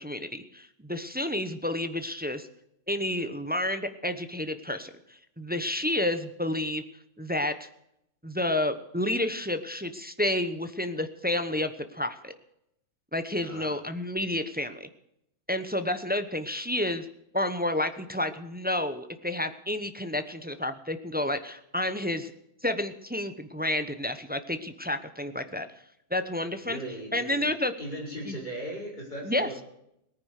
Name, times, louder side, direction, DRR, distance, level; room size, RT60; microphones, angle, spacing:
voice 1, 0.0-2.5 2.9-6.8 7.2-7.7 8.2-12.3 13.1-14.9 15.5-17.1 17.3-22.3 22.6-25.7 26.1-26.8 27.1-27.7 28.3-28.4 29.2-29.5, left 1 dB, 10° right, 9 dB, 0.8 m, -30 dB
voice 2, 13.4-13.8 26.6-27.5 27.8-29.6, right 1 dB, 30° left, -4 dB, 5.7 m, -38 dB
18.0 x 9.8 x 6.5 m, 0.78 s
omnidirectional pair, 1.5 m